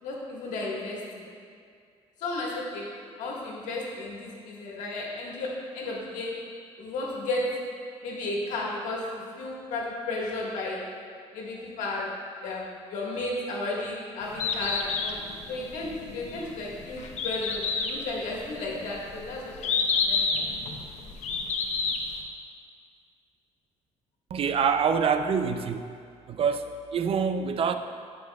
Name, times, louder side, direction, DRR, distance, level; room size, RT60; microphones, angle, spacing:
voice 1, 0.0-1.3 2.2-2.9 3.2-6.3 6.8-7.4 8.0-10.8 11.3-12.1 12.4-15.2 15.5-20.4, left 2 dB, 90° left, -3 dB, 1.6 m, -33 dB
Bird, 14.2-22.2, left 4 dB, 70° left, 0.8 m, -30 dB
voice 2, 24.3-25.9 26.3-27.7, right 6 dB, 50° right, 8 dB, 0.4 m, -26 dB
14.0 x 5.3 x 2.3 m, 2.2 s
cardioid pair, 100°, 12 cm